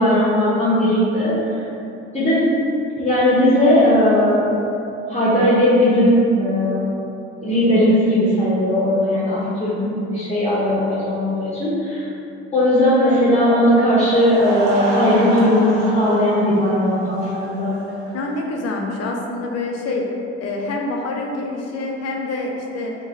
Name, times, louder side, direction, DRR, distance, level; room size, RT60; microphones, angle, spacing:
voice 1, 0.0-1.6 2.1-2.5 3.0-4.5 5.1-6.8 7.4-12.1 12.5-17.7, left 1 dB, 20° left, -11 dB, 1.4 m, -17 dB
Laughter / Crowd, 14.0-18.5, right 1 dB, 85° right, 0.6 m, -28 dB
voice 2, 18.1-20.0 20.4-23.0, left 2 dB, 50° left, 0 dB, 0.7 m, -26 dB
3.7 x 2.8 x 4.2 m, 2.7 s
hypercardioid pair, 55°, 32 cm